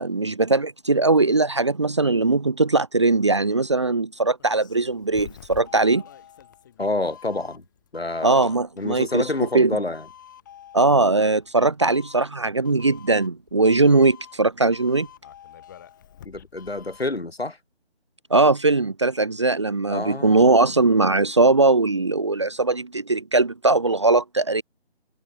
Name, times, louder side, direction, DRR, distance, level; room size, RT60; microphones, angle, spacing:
voice 1, 0.0-6.0 8.2-9.3 9.5-9.7 10.7-15.1 18.3-24.6, right 3 dB, 25° right, 1.1 m, -20 dB
Doorbell, 4.4-17.2, left 10 dB, 20° left, 4.9 m, -47 dB
voice 2, 6.8-7.6 7.9-10.1 16.2-17.6 19.9-20.6, left 2 dB, 70° left, 3.1 m, -28 dB
figure-of-eight pair, 160°, 32 cm